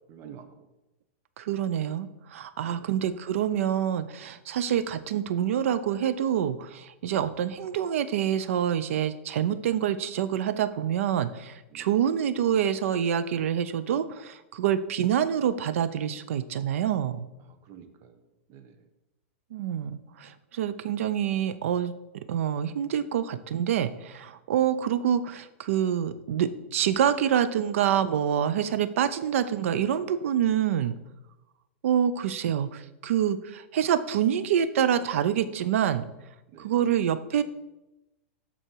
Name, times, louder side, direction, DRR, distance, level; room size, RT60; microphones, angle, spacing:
voice 1, 0.1-0.5 2.6-2.9 11.7-11.9 17.5-18.2 18.5-18.8 36.5-36.7, right 8 dB, 35° right, 7 dB, 1.1 m, -48 dB
voice 2, 1.4-17.3 19.5-31.0 31.8-36.1 36.6-37.4, right 9 dB, 70° right, 13 dB, 0.7 m, -26 dB
13.0 x 4.4 x 4.7 m, 0.97 s
hypercardioid pair, 135°, 7 cm